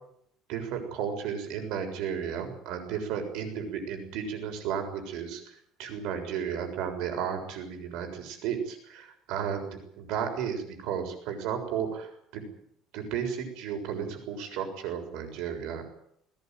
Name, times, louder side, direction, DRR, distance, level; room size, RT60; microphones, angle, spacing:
voice 1, 0.5-12.4 12.9-15.9, right 7 dB, 65° right, 5 dB, 6.9 m, -33 dB
20.5 x 19.0 x 9.4 m, 0.70 s
cardioid pair, 175°, 0 cm